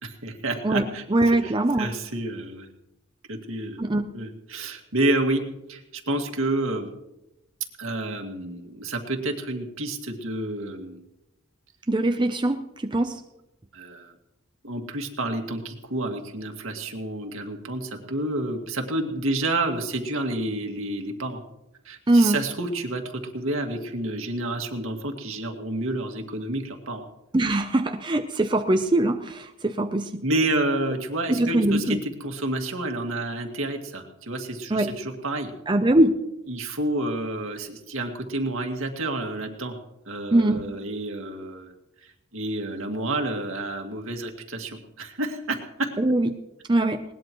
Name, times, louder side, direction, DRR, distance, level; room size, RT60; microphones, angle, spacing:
voice 1, 0.0-2.7 3.3-3.8 4.1-5.4 5.7-6.9 7.8-11.0 13.7-14.1 14.6-21.4 21.9-27.0 30.2-35.5 36.5-39.8 40.1-41.7 42.3-45.9, right 2 dB, 75° right, 3 dB, 2.1 m, -29 dB
voice 2, 0.6-1.9 3.8-4.1 11.9-13.2 22.1-22.4 27.3-30.2 31.3-32.0 34.7-34.9 35.7-36.2 40.3-40.6 46.0-46.3 46.7-47.0, right 1 dB, 20° right, 6 dB, 0.6 m, -22 dB
20.5 x 19.0 x 3.1 m, 0.91 s
head